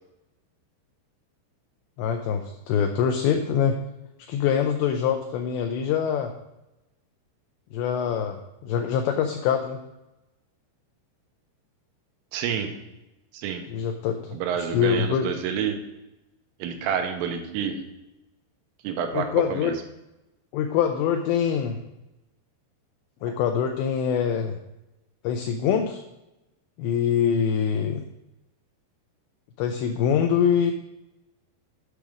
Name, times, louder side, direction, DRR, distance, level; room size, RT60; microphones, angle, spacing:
voice 1, 2.0-3.8 4.3-6.3 7.7-8.4 8.6-9.8 13.7-14.4 14.7-15.3 19.1-19.7 20.5-21.8 23.2-24.6 25.2-26.0 26.8-28.0 29.6-30.7, left 8 dB, 85° left, 5 dB, 2.5 m, -24 dB
voice 2, 12.3-12.7 13.3-13.6 14.3-15.8 16.6-17.8 18.8-19.8, right 8 dB, 90° right, 5 dB, 3.4 m, -28 dB
8.3 x 5.0 x 5.9 m, 0.94 s
omnidirectional pair, 5.7 m